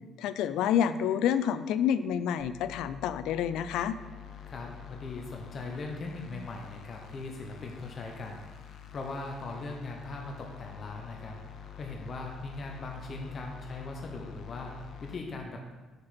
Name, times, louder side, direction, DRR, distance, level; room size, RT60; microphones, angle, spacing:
voice 1, 0.2-4.0, left 9 dB, 90° left, 13 dB, 0.3 m, -28 dB
sound 1, 2.4-15.1, left 9 dB, 70° left, 0.7 m, -47 dB
voice 2, 4.5-15.7, left 3 dB, 40° left, 1 dB, 0.8 m, -40 dB
6.0 x 5.1 x 4.2 m, 1.3 s
cardioid pair, 120°, 0 cm